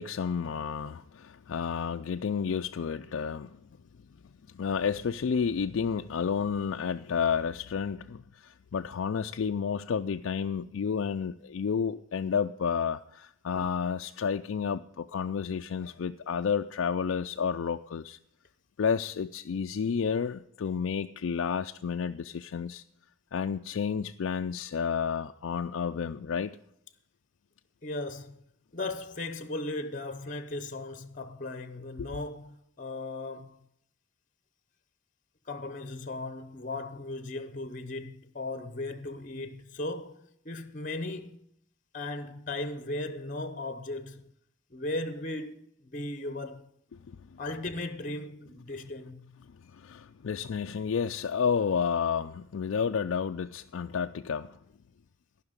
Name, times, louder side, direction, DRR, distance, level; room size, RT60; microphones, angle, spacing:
voice 1, 0.0-3.6 4.5-18.2 18.8-22.8 23.3-26.6 32.0-32.1 47.1-47.4 49.7-54.6, left 6 dB, 65° left, 0.4 m, -31 dB
voice 2, 27.8-28.4 28.7-33.6 35.4-41.4 41.9-44.3 44.7-46.7 47.4-49.4, left 2 dB, 35° left, 0.7 m, -37 dB
14.5 x 5.9 x 8.8 m
head